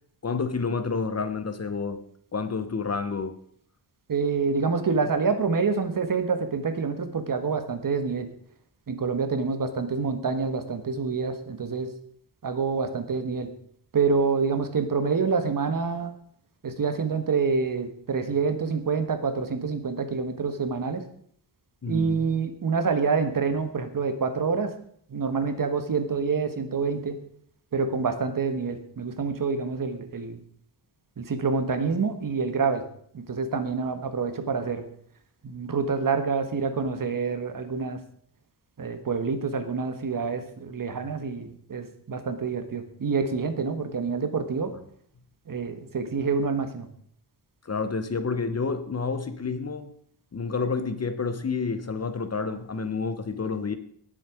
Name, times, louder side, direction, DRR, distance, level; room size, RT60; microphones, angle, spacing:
voice 1, 0.2-2.0 2.3-3.4 21.8-22.3 47.6-49.9 50.3-53.8, left 4 dB, 35° left, 1.0 m, -29 dB
voice 2, 4.1-8.3 8.9-11.9 12.4-13.5 13.9-16.1 16.6-21.0 21.9-24.7 25.1-27.2 27.7-30.4 31.2-32.8 33.1-34.9 35.4-38.0 38.8-44.7 45.5-46.9, right 5 dB, 50° right, 1.5 m, -27 dB
18.0 x 7.7 x 5.0 m
wide cardioid pair, 160°, 43 cm